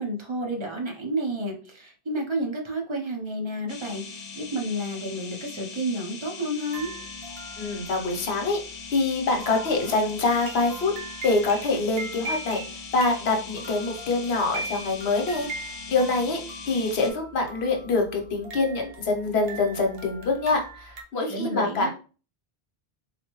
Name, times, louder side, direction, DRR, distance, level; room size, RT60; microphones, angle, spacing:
voice 1, 0.0-6.9 21.3-21.9, right 1 dB, 30° right, 1 dB, 0.7 m, -30 dB
sound 1, 3.7-17.1, left 5 dB, 50° left, 0.5 m, -40 dB
sound 2, 6.7-21.0, right 2 dB, 70° right, 0.9 m, -41 dB
voice 2, 7.6-8.6 8.9-10.9 11.2-12.6 12.9-21.9, left 3 dB, 80° left, 3 dB, 1.1 m, -25 dB
4.0 x 2.2 x 3.0 m, 0.36 s
omnidirectional pair, 1.1 m